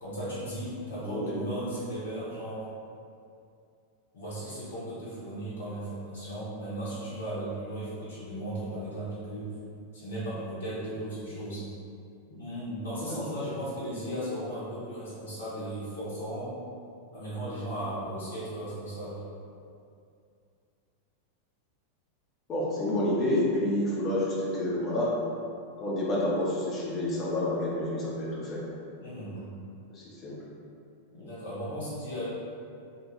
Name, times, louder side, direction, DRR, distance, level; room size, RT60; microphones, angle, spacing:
voice 1, 0.0-2.7 4.1-9.5 9.9-11.6 12.3-16.5 17.1-19.2 29.0-29.4 31.1-32.3, right 1 dB, 60° left, -9 dB, 0.7 m, -36 dB
voice 2, 1.0-1.3 13.0-13.2 22.5-25.2 25.8-28.6 29.9-30.4, left 1 dB, 30° left, -5 dB, 0.6 m, -29 dB
2.6 x 2.2 x 2.9 m, 2.4 s
figure-of-eight pair, 90°, 0 cm